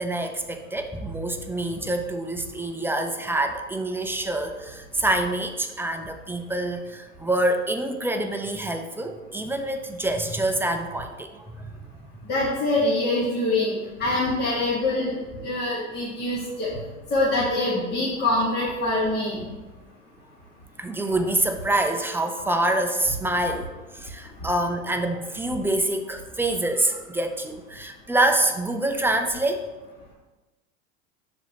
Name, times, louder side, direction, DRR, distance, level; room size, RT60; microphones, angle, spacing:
voice 1, 0.0-11.7 20.8-23.7 23.9-29.7, right 1 dB, 5° right, 5 dB, 0.5 m, -26 dB
voice 2, 12.3-13.7 14.0-15.1 15.4-16.7 17.1-19.4, left 2 dB, 25° left, -7 dB, 1.9 m, -24 dB
12.0 x 4.2 x 2.9 m, 1.2 s
hypercardioid pair, 95°, 39 cm